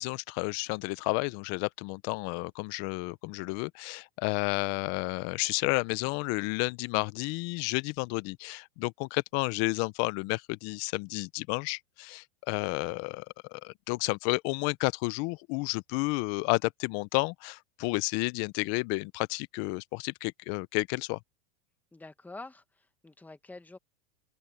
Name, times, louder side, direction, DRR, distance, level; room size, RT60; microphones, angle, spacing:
voice 1, 0.0-13.3 13.5-21.2, left 26 dB, 50° left, 0.8 m, -31 dB
voice 2, 21.9-23.8, left 2 dB, 5° left, 1.5 m, -47 dB
supercardioid pair, 130°, 33 cm